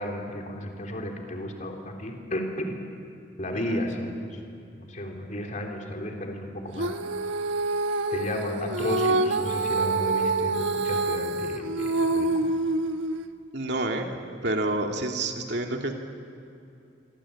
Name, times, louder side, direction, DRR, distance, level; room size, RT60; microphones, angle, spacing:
voice 1, 0.0-2.8 3.4-4.4 4.7-6.9 8.1-12.5, left 1 dB, 40° left, 2 dB, 3.7 m, -33 dB
Female singing, 6.8-13.3, right 2 dB, 90° right, 1.3 m, -26 dB
voice 2, 13.5-14.1 14.4-15.9, right 2 dB, 65° right, 2 dB, 2.6 m, -28 dB
26.5 x 25.0 x 8.7 m, 2.6 s
head